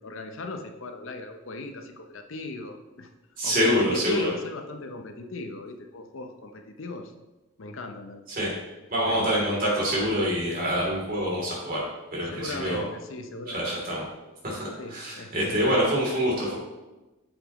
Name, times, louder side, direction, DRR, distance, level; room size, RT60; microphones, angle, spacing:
voice 1, 0.0-3.1 3.4-7.1 7.6-8.2 9.1-9.6 12.3-13.7 14.8-15.8, left 2 dB, 65° left, 6 dB, 0.6 m, -38 dB
voice 2, 3.4-4.3 8.4-8.5 8.9-11.8 12.1-12.8 13.5-14.0 14.4-16.6, equal, 40° right, -4 dB, 2.9 m, -26 dB
8.7 x 7.0 x 3.0 m, 1.1 s
head